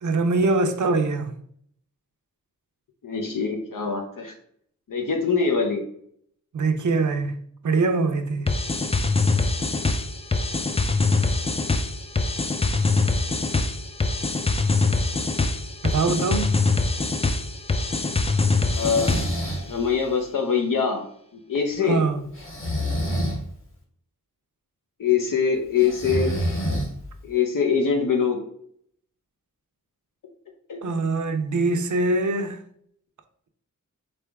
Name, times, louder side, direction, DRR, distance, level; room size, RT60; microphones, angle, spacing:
voice 1, 0.0-1.4 6.5-8.5 15.8-16.5 21.8-22.3 30.8-32.6, right 3 dB, 65° right, 0.6 m, -23 dB
voice 2, 3.0-4.3 4.9-5.8 18.7-19.1 19.6-21.0 21.5-22.0 25.0-26.4 27.2-28.4 30.7-30.8, left 6 dB, 75° left, 0.7 m, -23 dB
sound 1, 8.5-19.5, left 3 dB, 20° left, 0.4 m, -23 dB
Breathing, 18.7-19.7 22.4-23.4 25.8-27.2, equal, 40° left, 1.3 m, -27 dB
3.8 x 3.4 x 3.4 m
wide cardioid pair, 75°, 33 cm